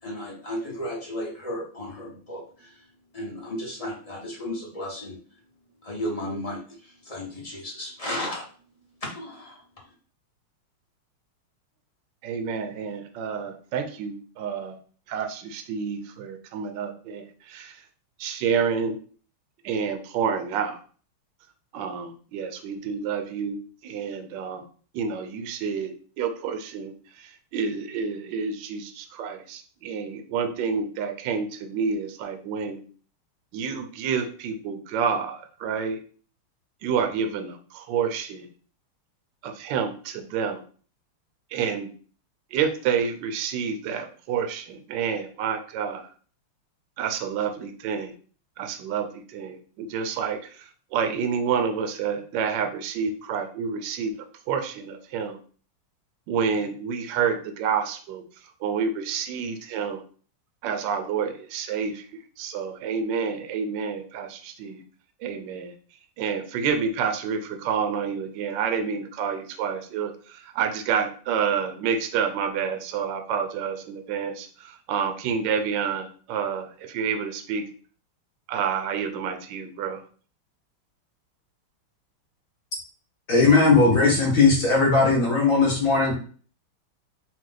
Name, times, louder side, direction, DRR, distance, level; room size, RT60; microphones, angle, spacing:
voice 1, 0.0-2.9 3.1-5.2 5.8-8.4 9.0-9.6, left 1 dB, 30° left, -3 dB, 0.6 m, -34 dB
voice 2, 12.2-14.8 15.1-17.8 18.2-19.0 19.6-20.8 21.7-24.6 24.9-32.8 33.5-36.0 36.8-38.5 39.4-40.6 41.5-41.9 42.5-46.0 47.0-48.1 48.6-54.1 54.5-55.4 56.3-60.0 60.6-62.1 62.4-64.8 65.2-65.7 66.2-77.6 78.5-80.0, right 6 dB, 70° right, 6 dB, 1.2 m, -29 dB
voice 3, 83.3-86.1, left 3 dB, 55° left, -2 dB, 0.9 m, -18 dB
4.4 x 2.4 x 3.8 m, 0.42 s
omnidirectional pair, 2.4 m